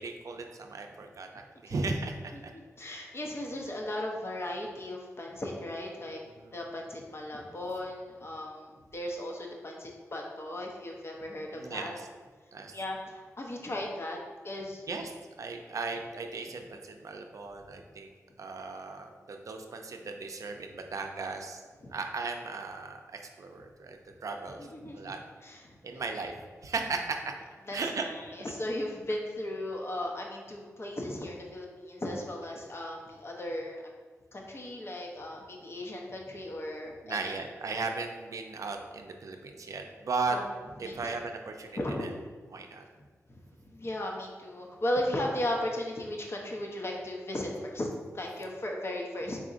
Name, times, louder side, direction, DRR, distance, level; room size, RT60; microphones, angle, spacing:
voice 1, 0.0-2.3 6.4-6.5 11.5-12.1 12.5-12.7 14.9-18.1 18.4-21.6 21.9-24.7 24.9-25.2 25.8-26.3 26.6-27.3 27.7-28.1 37.0-40.4 40.8-42.1 42.5-42.8, right 4 dB, 65° right, 4 dB, 0.5 m, -36 dB
voice 2, 2.8-6.2 6.5-11.9 12.7-14.2 14.4-14.8 21.8-21.9 24.6-25.1 25.4-26.1 27.7-27.8 28.0-33.8 34.3-37.4 40.3-40.4 40.8-41.2 41.8-42.1 43.3-43.4 43.7-49.4, left 1 dB, 45° left, 0 dB, 0.8 m, -36 dB
4.1 x 3.7 x 2.5 m, 1.4 s
cardioid pair, 50°, 6 cm